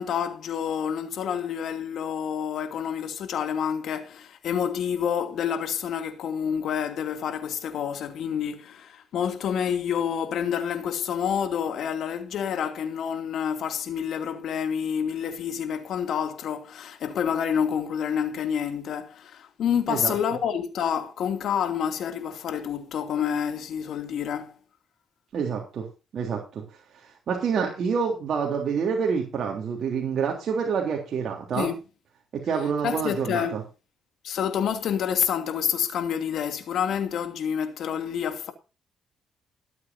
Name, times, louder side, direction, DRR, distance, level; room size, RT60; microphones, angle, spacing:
voice 1, 0.0-24.5 31.5-31.8 32.8-33.6 34.2-38.5, left 8 dB, 70° left, 2.6 m, -28 dB
voice 2, 25.3-25.9 26.1-26.6 27.0-31.7 32.4-33.6, right 6 dB, 60° right, 3.3 m, -27 dB
21.5 x 8.5 x 2.8 m
cardioid pair, 90°, 0 cm